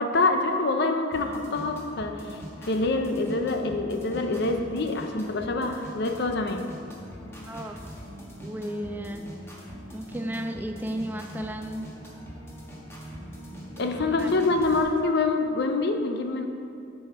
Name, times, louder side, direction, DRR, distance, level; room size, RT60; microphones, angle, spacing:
voice 1, 0.0-6.6 13.8-16.5, left 3 dB, 60° left, 5 dB, 0.6 m, -26 dB
sound 1, 1.1-14.8, equal, 15° left, 1.3 m, -42 dB
voice 2, 7.5-7.8 8.4-9.2 9.9-11.9 13.9-14.3, right 1 dB, 10° right, 5 dB, 0.3 m, -34 dB
7.7 x 6.3 x 4.9 m, 2.4 s
head